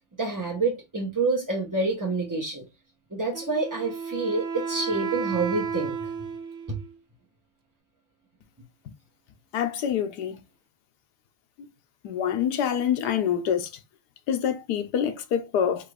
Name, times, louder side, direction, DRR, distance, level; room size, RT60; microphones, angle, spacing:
voice 1, 0.2-2.6 3.1-6.1 6.7-6.8, right 3 dB, 20° right, 0.6 m, -27 dB
Wind instrument woodwind instrument, 3.3-6.9, right 6 dB, 60° right, 0.8 m, -33 dB
voice 2, 9.5-10.4 11.6-11.7 12.0-13.7 14.3-15.9, left 8 dB, 85° left, 1.3 m, -26 dB
4.1 x 2.5 x 4.7 m
omnidirectional pair, 1.7 m